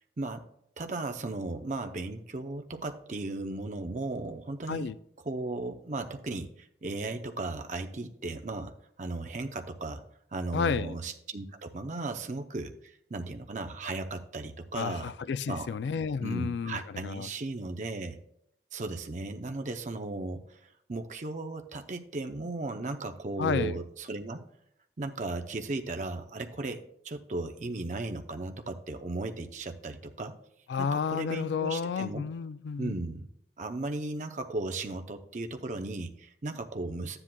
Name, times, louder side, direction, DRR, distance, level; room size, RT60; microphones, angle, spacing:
voice 1, 0.8-4.9 5.3-8.7 9.0-10.0 10.3-15.1 15.5-15.7 16.2-18.2 18.7-20.4 20.9-24.4 25.0-30.3 30.8-32.3 32.8-33.3 33.6-37.2, right 2 dB, 45° right, 0.6 m, -36 dB
voice 2, 10.5-11.0 14.7-17.3 23.4-23.8 30.7-33.0, left 5 dB, 80° left, 0.3 m, -31 dB
13.5 x 9.8 x 2.2 m
head